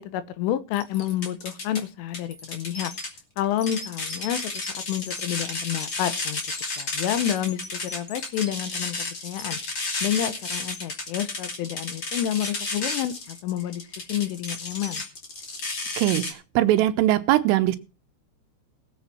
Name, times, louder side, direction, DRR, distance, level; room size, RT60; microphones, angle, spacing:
voice 1, 0.0-2.9 3.4-6.4 6.8-9.6 10.0-13.8 14.1-15.0, left 11 dB, 80° left, 13 dB, 3.5 m, -29 dB
sound 1, 0.7-1.8 2.1-16.3, left 3 dB, 35° left, 2.1 m, -32 dB
voice 2, 16.0-17.8, right 14 dB, 85° right, 10 dB, 3.5 m, -21 dB
19.0 x 7.9 x 4.4 m, 0.31 s
omnidirectional pair, 5.8 m